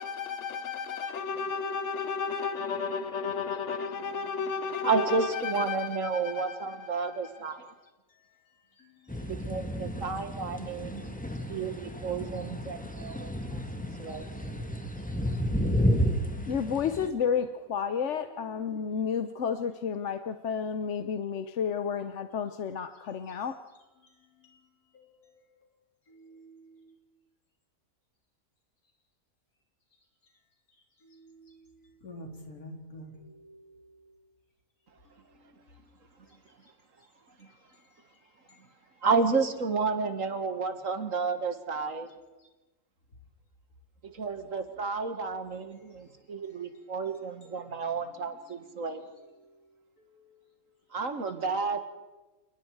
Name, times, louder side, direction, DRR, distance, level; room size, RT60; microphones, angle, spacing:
voice 1, 0.0-6.6 16.5-23.6, left 6 dB, 60° left, 1.1 m, -32 dB
voice 2, 4.8-7.6 9.3-11.2 11.5-13.6 14.0-14.3 39.0-42.1 44.0-49.0 50.9-51.8, right 4 dB, 60° right, 2.0 m, -31 dB
sound 1, 9.1-17.1, equal, 5° left, 1.6 m, -32 dB
voice 3, 24.9-25.4 26.1-26.5 31.2-31.5 32.0-33.1, equal, 85° left, 4.1 m, -46 dB
28.0 x 20.5 x 4.7 m
omnidirectional pair, 1.5 m